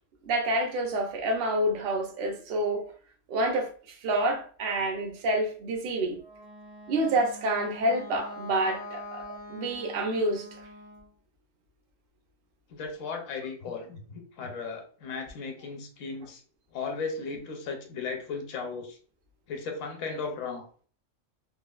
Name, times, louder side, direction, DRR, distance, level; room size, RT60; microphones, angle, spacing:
voice 1, 0.3-2.9 3.3-3.7 4.0-6.2 6.9-9.2 9.5-10.5, right 1 dB, 55° right, 0.7 m, -28 dB
Wind instrument woodwind instrument, 6.1-11.1, left 1 dB, 55° left, 0.5 m, -44 dB
voice 2, 12.7-16.4 16.7-19.0 19.5-20.7, left 4 dB, 80° left, 1.0 m, -36 dB
3.1 x 2.3 x 2.2 m
omnidirectional pair, 1.3 m